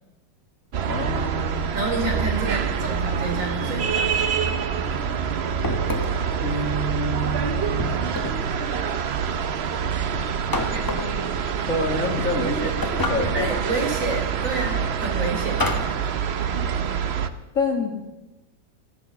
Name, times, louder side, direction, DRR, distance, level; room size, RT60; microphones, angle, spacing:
sound 1, 0.7-17.3, right 7 dB, 60° right, 0.6 m, -26 dB
voice 1, 0.8-1.7 6.3-8.0 11.7-13.5 17.5-17.9, left 2 dB, 45° left, 2 dB, 2.0 m, -27 dB
voice 2, 1.7-4.6 10.7-10.8 13.3-15.9, right 2 dB, 45° right, 0 dB, 3.7 m, -29 dB
sound 2, 5.6-6.3 7.8-8.5 10.5-11.2 12.8-13.5 15.6-16.0, left 2 dB, 15° left, 0.8 m, -28 dB
13.5 x 13.5 x 7.2 m, 1.0 s
omnidirectional pair, 2.0 m